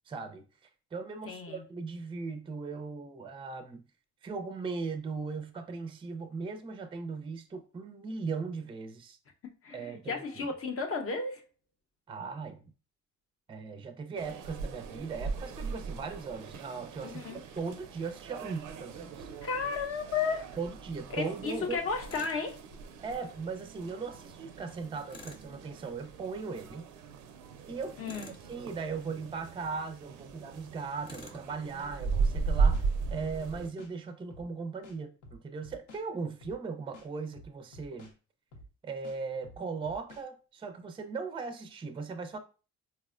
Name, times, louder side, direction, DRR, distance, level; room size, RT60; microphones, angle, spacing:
voice 1, 0.1-3.9 4.2-9.2 9.7-10.5 12.1-12.7 13.5-19.3 20.6-21.8 23.0-26.9 27.7-28.0 28.5-38.1 38.8-42.4, right 4 dB, 20° right, 0.4 m, -38 dB
voice 2, 1.3-1.6 9.6-11.4 17.0-17.4 19.4-20.5 21.1-22.6 28.0-28.3, left 5 dB, 50° left, 0.7 m, -33 dB
sound 1, 14.2-33.7, right 5 dB, 85° right, 0.5 m, -37 dB
Tools, 22.1-22.4 25.1-25.5 28.0-28.5 31.0-31.4, left 1 dB, 20° left, 0.8 m, -48 dB
sound 2, 32.2-32.4 32.7-33.9 34.3-34.5 34.8-36.0 36.4-36.6 36.9-38.1 38.5-38.7 39.0-40.2, left 1 dB, 80° left, 0.8 m, -51 dB
4.2 x 2.0 x 2.4 m
cardioid pair, 90°, 30 cm